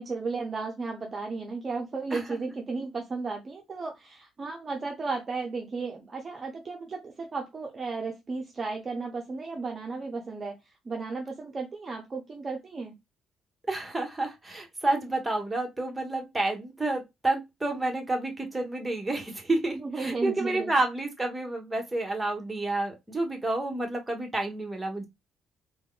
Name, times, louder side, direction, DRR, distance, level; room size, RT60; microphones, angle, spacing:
voice 1, 0.0-10.6 10.9-13.0 19.8-20.7, right 4 dB, 40° right, 0.6 m, -34 dB
voice 2, 13.7-25.1, right 2 dB, 15° right, 1.1 m, -29 dB
3.4 x 2.1 x 2.3 m
hypercardioid pair, 55°, 0 cm